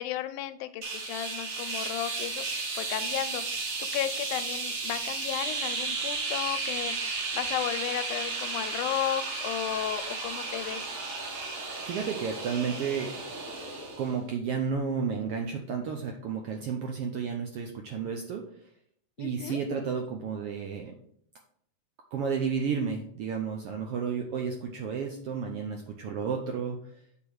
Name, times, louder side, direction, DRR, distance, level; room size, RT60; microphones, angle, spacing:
voice 1, 0.0-2.5 2.8-10.9 19.2-19.6, left 12 dB, 90° left, 10 dB, 2.1 m, -34 dB
sound 1, 0.8-14.2, right 3 dB, 55° right, 2.3 m, -34 dB
voice 2, 11.9-13.2 14.0-18.4 19.2-20.9 22.1-27.0, right 6 dB, 75° right, 3 dB, 1.3 m, -32 dB
8.1 x 3.8 x 6.2 m, 0.67 s
omnidirectional pair, 3.4 m